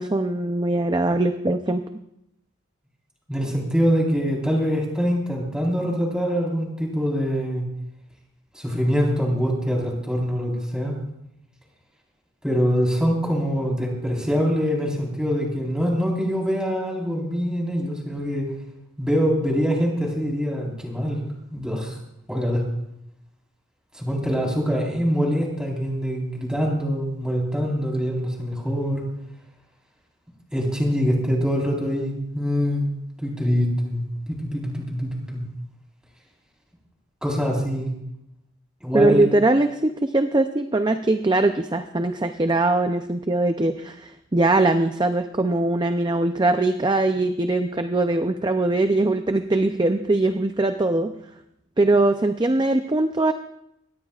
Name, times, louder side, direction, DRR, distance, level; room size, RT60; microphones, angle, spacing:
voice 1, 0.0-1.8 38.9-51.1 51.8-53.3, right 2 dB, 20° right, 7 dB, 0.5 m, -21 dB
voice 2, 3.3-7.7 8.5-10.9 12.4-18.5 19.0-21.2 21.5-22.0 22.3-22.6 23.9-29.0 30.5-32.9 33.2-35.4 37.2-37.9 38.8-39.3, equal, 5° right, -2 dB, 4.1 m, -24 dB
23.5 x 19.0 x 2.4 m, 0.82 s
head